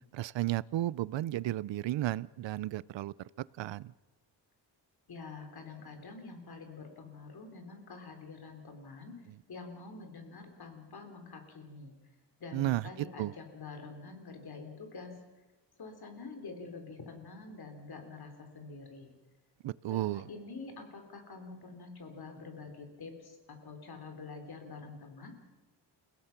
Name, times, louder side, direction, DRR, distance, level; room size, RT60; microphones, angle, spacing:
voice 1, 0.1-3.9 12.5-12.9 13.2-13.3 19.6-20.3, right 15 dB, 80° right, 21 dB, 0.6 m, -33 dB
voice 2, 5.1-9.2 9.5-12.0 12.4-15.1 15.8-19.1 19.9-25.3, left 4 dB, 55° left, 4 dB, 3.8 m, -46 dB
29.5 x 17.0 x 5.9 m, 1.2 s
wide cardioid pair, 130°, 44 cm